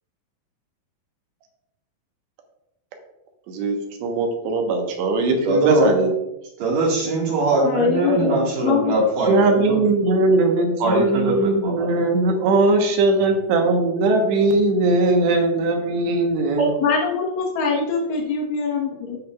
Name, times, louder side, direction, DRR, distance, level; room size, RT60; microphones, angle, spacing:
voice 1, 4.0-6.1 9.3-16.7, right 2 dB, 85° right, 3 dB, 3.3 m, -19 dB
voice 2, 5.4-5.9 6.6-9.8 10.8-11.9 16.6-16.7, right 2 dB, 60° right, -3 dB, 3.0 m, -21 dB
voice 3, 7.6-8.3 8.6-9.0 16.8-19.2, left 5 dB, 80° left, -1 dB, 1.6 m, -23 dB
15.5 x 5.4 x 2.4 m, 0.90 s
omnidirectional pair, 4.9 m